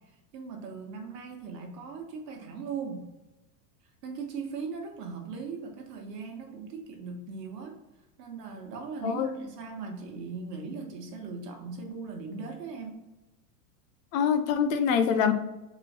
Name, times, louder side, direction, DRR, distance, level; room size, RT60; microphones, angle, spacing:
voice 1, 0.3-3.1 4.0-7.8 8.2-13.0, right 5 dB, 80° right, 2 dB, 1.4 m, -39 dB
voice 2, 9.0-9.3 14.1-15.3, left 7 dB, 55° left, 9 dB, 0.6 m, -24 dB
4.1 x 3.0 x 4.1 m, 1.0 s
supercardioid pair, 145°, 48 cm